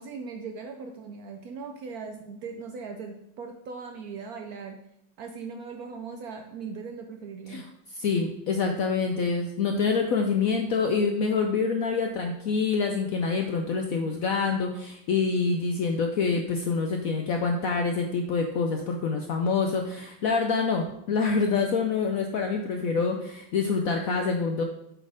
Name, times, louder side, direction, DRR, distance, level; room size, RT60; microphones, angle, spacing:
voice 1, 0.0-4.8 5.2-7.7, right 5 dB, 70° right, 4 dB, 0.9 m, -39 dB
voice 2, 7.9-24.6, left 4 dB, 70° left, 3 dB, 0.8 m, -26 dB
7.6 x 4.3 x 5.0 m, 0.79 s
omnidirectional pair, 2.1 m